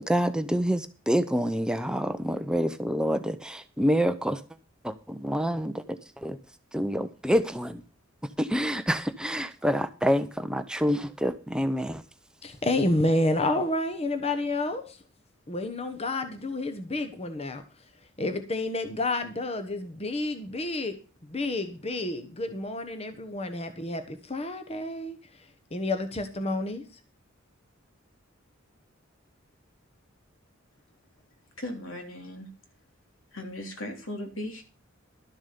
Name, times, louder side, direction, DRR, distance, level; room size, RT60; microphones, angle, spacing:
voice 1, 0.0-4.4 4.8-6.4 6.7-7.8 8.4-12.0, equal, 5° right, 0.6 m, -27 dB
voice 2, 12.4-15.0 15.5-17.9 18.2-27.0, left 2 dB, 30° left, 1.1 m, -30 dB
voice 3, 31.6-32.5 33.3-34.6, left 1 dB, 80° left, 3.3 m, -37 dB
12.5 x 7.2 x 6.8 m
head